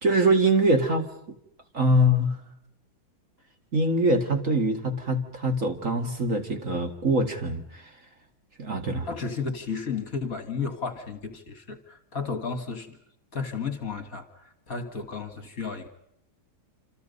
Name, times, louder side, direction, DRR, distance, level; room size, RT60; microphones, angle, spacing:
voice 1, 0.0-1.1 1.7-2.4 3.7-7.8 8.6-9.1, right 1 dB, 40° right, 5 dB, 2.5 m, -23 dB
voice 2, 9.0-13.0 13.3-15.9, left 5 dB, 45° left, 9 dB, 2.2 m, -33 dB
28.0 x 27.5 x 5.5 m, 0.70 s
omnidirectional pair, 2.2 m